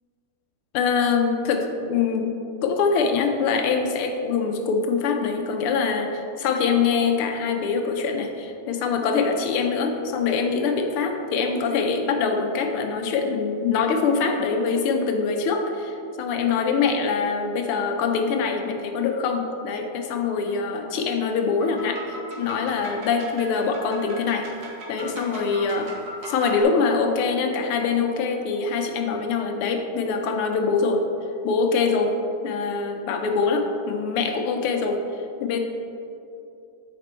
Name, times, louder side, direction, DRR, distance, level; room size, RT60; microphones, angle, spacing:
voice 1, 0.7-2.3 2.6-24.5 24.9-25.9 26.3-31.1 31.4-32.2 32.4-35.0 35.4-35.6, left 5 dB, 85° left, 4 dB, 1.7 m, -24 dB
sound 1, 21.6-26.6, right 1 dB, 65° right, 2.0 m, -38 dB
8.2 x 5.2 x 4.4 m, 2.6 s
omnidirectional pair, 2.4 m